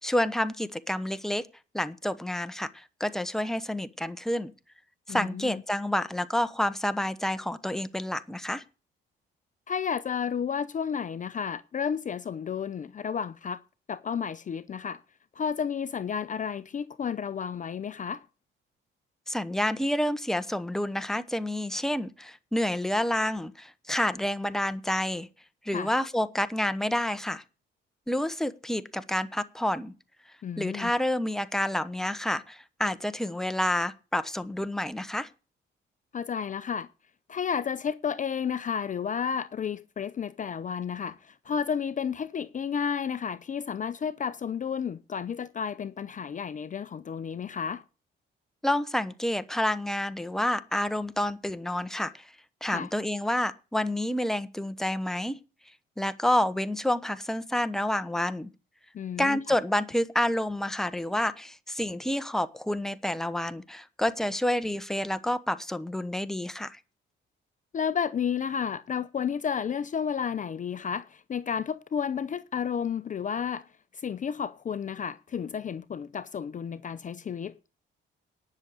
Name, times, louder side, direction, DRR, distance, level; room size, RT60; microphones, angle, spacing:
voice 1, 0.0-1.5 1.7-4.5 5.1-8.6 19.3-25.3 25.6-27.4 28.1-29.9 30.6-35.3 48.6-52.3 52.6-55.4 56.0-58.5 59.2-66.8, left 1 dB, ahead, 1.1 m, -29 dB
voice 2, 5.1-5.6 9.7-13.6 13.9-15.0 15.3-18.2 25.7-25.9 30.4-30.9 36.1-36.9 37.3-47.8 52.7-52.9 58.9-59.6 67.7-73.7 73.9-77.6, left 7 dB, 40° left, 0.6 m, -32 dB
10.5 x 6.7 x 8.4 m
cardioid pair, 90°, 20 cm